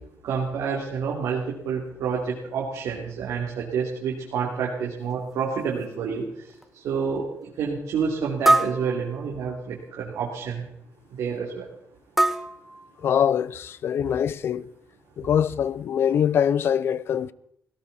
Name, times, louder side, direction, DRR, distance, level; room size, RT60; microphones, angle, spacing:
voice 1, 0.2-6.3 6.7-10.6 11.1-11.7, right 6 dB, 85° right, 3.1 m, -28 dB
sound 1, 5.1-5.2 5.8-5.9 6.5-6.7 8.4-9.6 12.2-13.5, right 1 dB, 5° right, 0.9 m, -25 dB
voice 2, 13.0-14.7 15.2-17.3, left 8 dB, 50° left, 0.5 m, -23 dB
17.5 x 17.5 x 4.3 m
cardioid pair, 170°, 5 cm